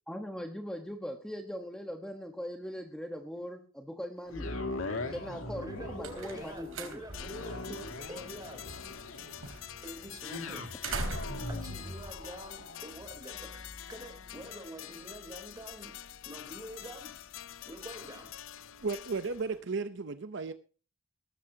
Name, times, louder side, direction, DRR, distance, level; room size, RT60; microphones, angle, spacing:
voice 1, 0.1-4.5 5.1-7.0, equal, 5° left, 4 dB, 1.2 m, -40 dB
sound 1, 4.3-18.5 19.0-19.1, left 2 dB, 90° left, 2.3 m, -42 dB
sound 2, 5.5-13.0, right 3 dB, 85° right, 3.8 m, -43 dB
voice 2, 5.6-8.8 9.8-10.7 11.5-17.1 17.7-18.3, right 1 dB, 20° right, 5 dB, 3.5 m, -46 dB
sound 3, 7.1-19.6, left 11 dB, 70° left, 0.6 m, -47 dB
voice 3, 18.8-20.5, right 4 dB, 60° right, 11 dB, 0.7 m, -34 dB
18.0 x 14.5 x 2.8 m, 0.36 s
head